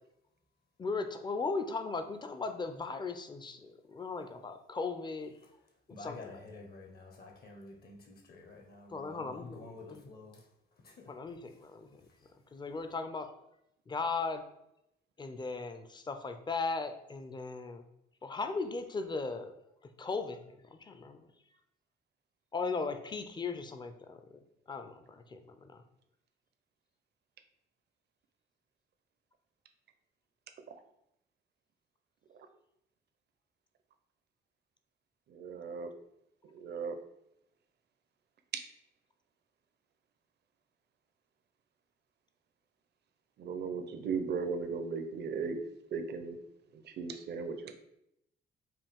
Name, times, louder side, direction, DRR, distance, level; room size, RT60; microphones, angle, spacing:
voice 1, 0.8-5.4 5.9-6.4 8.9-10.1 11.1-12.0 12.5-13.3 13.9-14.4 15.2-17.9 18.2-19.5 20.0-20.4 20.8-21.3 22.5-24.2 24.7-25.8, left 4 dB, 20° left, 0.5 m, -37 dB
voice 2, 5.9-10.4 10.8-11.1, left 3 dB, 50° left, 1.0 m, -49 dB
voice 3, 35.3-35.9 36.5-37.0 43.4-45.6 45.9-46.4 47.0-47.7, right 5 dB, 55° right, 0.6 m, -36 dB
5.5 x 2.3 x 3.5 m
cardioid pair, 90°, 20 cm